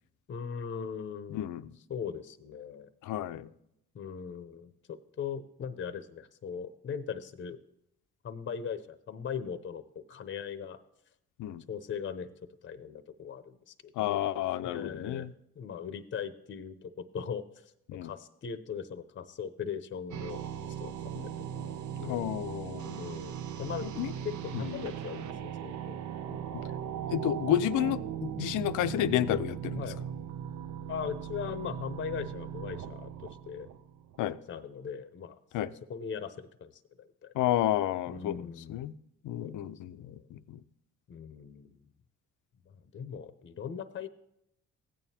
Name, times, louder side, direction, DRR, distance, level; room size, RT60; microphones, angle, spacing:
voice 1, 0.3-1.5 1.9-2.9 3.9-7.6 8.2-10.8 11.7-12.3 12.6-14.2 14.6-15.3 15.5-17.7 18.0-20.9 21.2-21.7 22.0-22.3 23.0-23.9 24.2-26.6 29.8-30.0 30.9-33.7 34.5-35.4 35.9-37.3 38.1-38.9 39.4-39.6 40.0-40.3 41.1-41.8 42.7-44.1, left 7 dB, 40° left, 0.7 m, -40 dB
voice 2, 1.3-1.6 3.0-3.5 11.4-11.6 14.0-15.3 17.9-18.1 21.2-21.3 22.0-23.0 23.8-24.1 24.5-24.8 26.5-26.6 27.1-29.8 34.2-34.4 35.5-35.7 37.3-38.9 39.2-40.6, left 12 dB, 80° left, 0.5 m, -31 dB
sound 1, 20.1-34.2, right 9 dB, 70° right, 0.7 m, -38 dB
15.0 x 9.1 x 2.8 m
cardioid pair, 90°, 30 cm